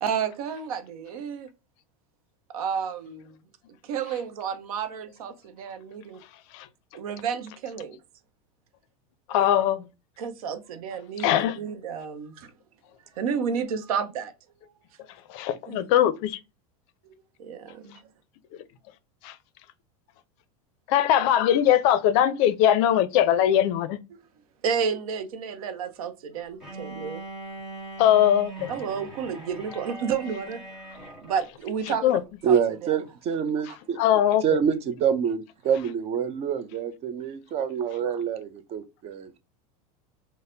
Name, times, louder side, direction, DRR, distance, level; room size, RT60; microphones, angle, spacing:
voice 1, 0.0-1.5 2.5-3.4 3.8-6.2 6.9-8.0 10.2-11.3 11.5-12.5 13.2-14.3 15.7-15.8 17.0-17.1 17.4-18.0 24.6-27.2 28.7-30.9 31.2-33.0, right 7 dB, 85° right, 0.6 m, -31 dB
voice 2, 9.3-9.9 11.2-11.6 15.3-16.4 19.2-19.3 20.9-24.0 28.0-28.7 32.0-32.2 34.0-34.4, left 11 dB, 55° left, 0.4 m, -21 dB
Bowed string instrument, 26.6-31.5, right 2 dB, ahead, 1.3 m, -41 dB
voice 3, 32.4-34.0 34.4-39.4, right 7 dB, 35° right, 0.5 m, -26 dB
4.0 x 2.0 x 2.5 m
supercardioid pair, 135°, 18 cm